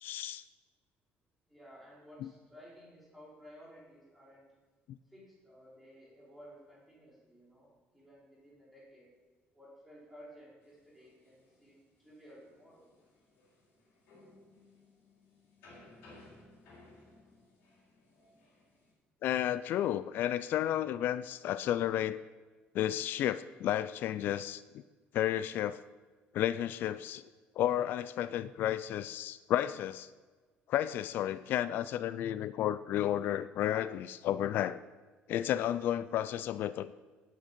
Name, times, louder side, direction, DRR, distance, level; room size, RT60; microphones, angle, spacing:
voice 1, 0.0-0.4 2.2-2.3 19.2-22.2 22.7-24.6 25.1-25.8 26.3-27.2 27.6-30.1 30.7-34.8 35.3-36.9, left 11 dB, 55° left, 15 dB, 0.3 m, -32 dB
voice 2, 1.5-4.5 5.1-9.1 9.5-12.9, equal, 5° left, -8 dB, 4.6 m, -55 dB
sound 1, 10.6-18.9, left 2 dB, 75° left, 4.1 m, -60 dB
17.5 x 6.4 x 5.2 m, 1.3 s
cardioid pair, 160°, 4 cm